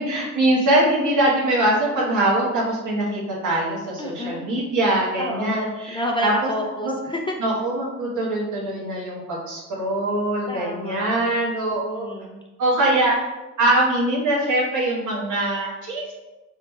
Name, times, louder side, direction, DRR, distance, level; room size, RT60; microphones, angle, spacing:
voice 1, 0.0-6.5 6.8-6.9 7.4-12.1 12.6-16.1, right 1 dB, 75° right, -4 dB, 1.3 m, -22 dB
voice 2, 4.0-4.5 5.2-7.3 10.5-11.2 11.8-12.4, equal, 15° left, 0 dB, 0.4 m, -29 dB
5.0 x 2.8 x 2.3 m, 1.1 s
cardioid pair, 90°, 30 cm